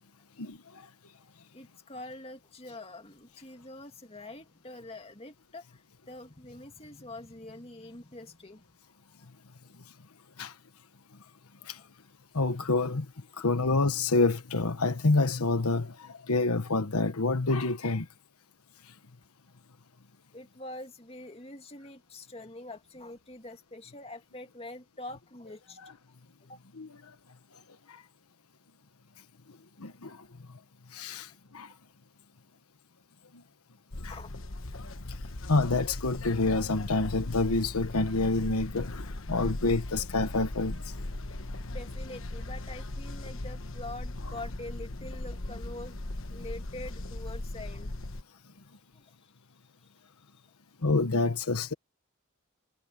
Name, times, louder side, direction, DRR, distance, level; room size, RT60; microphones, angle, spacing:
voice 1, 1.5-8.8 11.8-11.9 13.3-13.4 20.3-26.2 26.5-26.6 34.0-34.3 41.7-46.0 46.3-48.0 48.9-49.3, left 2 dB, 25° left, 2.2 m, -45 dB
voice 2, 12.3-13.1 13.4-18.1 26.8-26.9 27.9-28.0 29.8-30.2 30.9-31.7 34.0-34.1 35.1-35.2 35.5-40.8 50.8-51.7, left 3 dB, 85° left, 1.3 m, -27 dB
sound 1, 33.9-48.2, left 1 dB, 60° left, 1.3 m, -38 dB
head